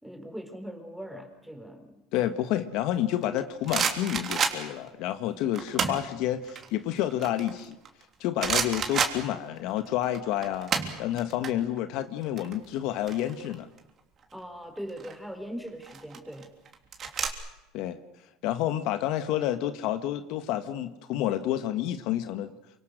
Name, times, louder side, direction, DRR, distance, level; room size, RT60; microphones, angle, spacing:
voice 1, 0.0-2.0 14.3-16.5, equal, ahead, 6 dB, 4.4 m, -40 dB
voice 2, 2.1-7.7 8.2-10.7 11.0-13.7 17.7-18.0 18.4-22.5, left 12 dB, 65° left, 10 dB, 1.5 m, -29 dB
sound 1, 3.2-4.9 5.5-6.1 6.5-8.0 8.4-9.8 10.0-11.5 11.8-12.0 12.2-13.8 14.8-15.2 15.8-17.3, right 6 dB, 35° right, 3.3 m, -30 dB
28.0 x 25.5 x 6.6 m, 0.92 s
supercardioid pair, 130°, 0 cm